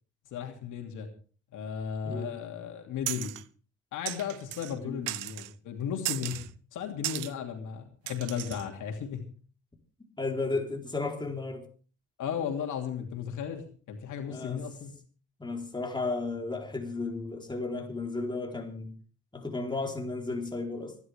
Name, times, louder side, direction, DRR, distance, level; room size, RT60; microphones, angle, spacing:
voice 1, 0.3-1.1 1.5-3.3 3.9-6.4 6.7-9.2 12.2-14.9, left 8 dB, 85° left, 2.8 m, -35 dB
voice 2, 2.0-2.4 4.7-5.0 10.2-11.6 14.3-14.6 15.4-18.9 19.3-21.0, left 3 dB, 15° left, 4.0 m, -34 dB
sound 1, 3.1-3.4 4.0-4.7 5.1-5.5 6.0-6.5 7.0-7.3 8.1-8.7, right 17 dB, 90° right, 0.7 m, -36 dB
25.5 x 11.0 x 3.5 m
cardioid pair, 90°, 30 cm